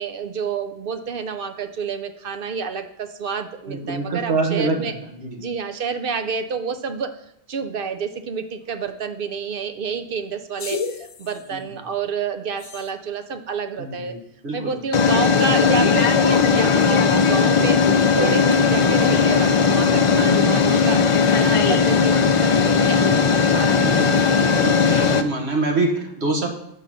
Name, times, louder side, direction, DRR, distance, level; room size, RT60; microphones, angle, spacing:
voice 1, 0.0-4.9 5.4-7.1 7.5-14.1 14.5-17.8 18.2-21.0 21.4-24.3, right 5 dB, 60° right, 7 dB, 0.8 m, -29 dB
voice 2, 3.7-4.9 5.2-5.4 11.5-11.6 13.8-14.7 23.8-24.2 24.6-26.5, right 3 dB, 80° right, 2 dB, 1.5 m, -25 dB
sound 1, 10.6-11.0 12.7-12.8 14.9-25.2, left 5 dB, 50° left, 0.3 m, -17 dB
5.7 x 5.4 x 6.1 m, 0.79 s
omnidirectional pair, 1.1 m